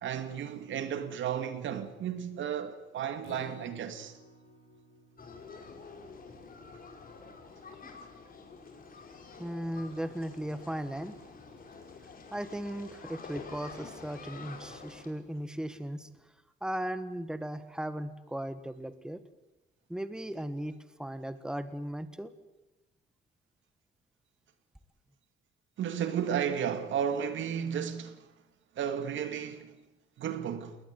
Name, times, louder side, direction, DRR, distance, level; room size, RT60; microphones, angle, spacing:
voice 1, 0.0-4.2 25.8-28.3 28.8-29.8 30.2-30.8, right 8 dB, 75° right, 2.3 m, -33 dB
Acoustic guitar, 3.2-9.5 9.9-10.0 10.4-10.5, left 3 dB, 70° left, 6.7 m, -59 dB
sound 1, 5.2-15.1, left 4 dB, 45° left, 5.3 m, -48 dB
voice 2, 9.4-11.2 12.3-16.1 16.6-19.2 19.9-22.3, right 1 dB, 5° right, 1.6 m, -37 dB
21.0 x 19.5 x 9.5 m
cardioid pair, 90°, 20 cm